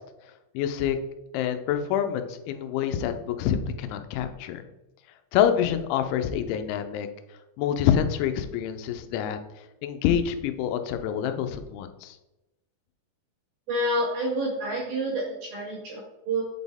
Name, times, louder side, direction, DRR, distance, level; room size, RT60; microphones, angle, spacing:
voice 1, 0.5-1.0 1.3-4.6 5.3-7.1 7.6-9.4 9.8-12.2, left 9 dB, 90° left, 8 dB, 3.0 m, -26 dB
voice 2, 13.7-16.4, right 1 dB, 70° right, -2 dB, 2.3 m, -28 dB
7.8 x 4.1 x 3.5 m, 0.97 s
omnidirectional pair, 5.2 m